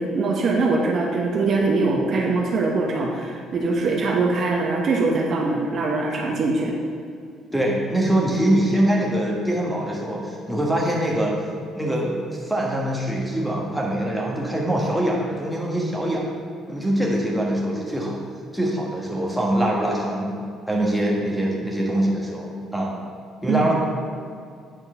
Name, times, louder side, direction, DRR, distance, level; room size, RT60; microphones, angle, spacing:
voice 1, 0.0-6.7 23.5-23.7, right 3 dB, 45° right, -1 dB, 1.0 m, -22 dB
voice 2, 7.5-11.4 11.7-16.3 16.7-18.2 18.5-20.3 20.7-22.9 23.4-23.7, right 1 dB, ahead, -3 dB, 1.4 m, -23 dB
8.9 x 4.4 x 5.5 m, 2.3 s
cardioid pair, 145°, 0 cm